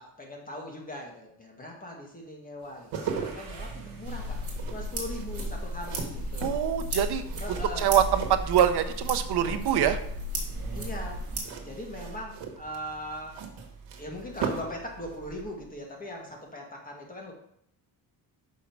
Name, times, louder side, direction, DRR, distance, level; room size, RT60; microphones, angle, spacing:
voice 1, 0.0-4.4 4.7-6.6 7.4-7.9 10.7-11.2 11.6-13.4 14.0-17.3, left 1 dB, 20° left, 0 dB, 1.8 m, -40 dB
sound 1, 2.6-9.1 9.4-10.0 11.3-14.8 15.1-15.3, right 6 dB, 80° right, 1.3 m, -38 dB
sound 2, 2.9-15.8, right 4 dB, 50° right, 1.5 m, -44 dB
sound 3, 4.0-11.4, equal, 30° right, 2.2 m, -35 dB
voice 2, 6.4-7.2 7.5-10.0, right 9 dB, 65° right, 8 dB, 0.8 m, -24 dB
6.2 x 5.6 x 4.6 m, 0.71 s
cardioid pair, 125°, 43 cm